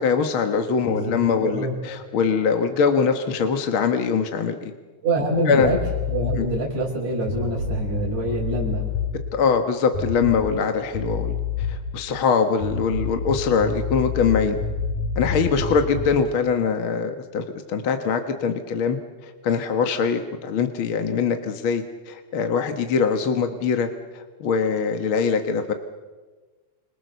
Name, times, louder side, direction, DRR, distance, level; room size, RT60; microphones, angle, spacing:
voice 1, 0.0-4.7 5.5-5.7 6.4-6.5 9.3-11.4 11.7-14.6 15.2-19.0 19.4-23.9 24.4-25.7, left 6 dB, 50° left, 6 dB, 1.9 m, -22 dB
voice 2, 1.4-1.8 5.0-5.8 6.1-8.9, right 1 dB, 60° right, -3 dB, 6.5 m, -25 dB
sound 1, 5.6-6.6 7.2-9.2 9.9-10.7 10.9-11.9 12.6-16.2, left 5 dB, 85° left, 9.2 m, -28 dB
30.0 x 27.0 x 6.9 m, 1.3 s
omnidirectional pair, 3.5 m